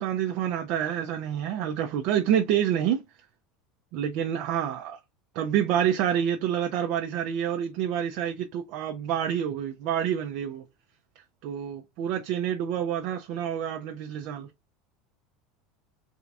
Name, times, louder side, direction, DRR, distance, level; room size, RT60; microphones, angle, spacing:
voice 1, 0.0-3.0 3.9-5.0 5.3-10.6 11.4-14.5, right 9 dB, 60° right, 0.6 m, -28 dB
3.9 x 3.5 x 2.4 m
hypercardioid pair, 90°, 0 cm